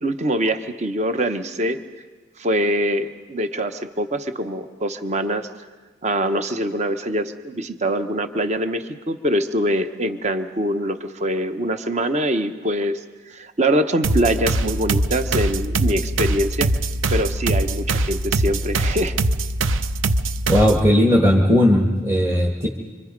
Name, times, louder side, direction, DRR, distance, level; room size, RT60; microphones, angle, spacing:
voice 1, 0.0-1.8 2.4-5.5 6.0-13.0 13.3-16.7 17.1-19.1, right 1 dB, 35° right, 9 dB, 1.0 m, -23 dB
sound 1, 14.0-20.9, right 2 dB, 75° right, 0.7 m, -22 dB
voice 2, 20.5-22.7, left 1 dB, 15° right, -1 dB, 1.5 m, -17 dB
26.0 x 25.0 x 5.2 m, 1.4 s
head